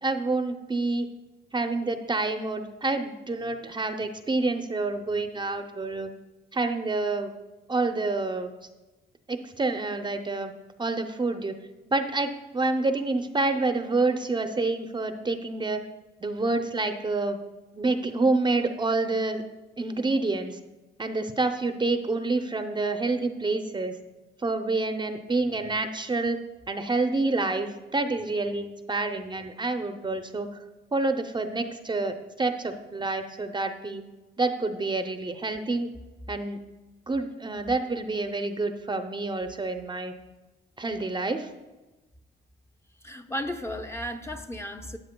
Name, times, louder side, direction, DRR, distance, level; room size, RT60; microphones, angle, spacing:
voice 1, 0.0-1.1 1.5-6.1 6.5-7.3 7.7-8.5 9.3-10.5 10.8-11.6 11.9-15.8 16.2-17.4 17.7-19.4 19.8-20.6 21.0-24.0 24.4-26.4 26.7-30.5 30.9-34.0 34.4-35.9 36.3-36.6 37.1-40.1 40.8-41.5, right 3 dB, 25° right, 7 dB, 0.6 m, -28 dB
voice 2, 43.0-45.0, equal, 15° left, 5 dB, 0.6 m, -34 dB
13.0 x 9.0 x 2.2 m, 1.1 s
cardioid pair, 90°, 20 cm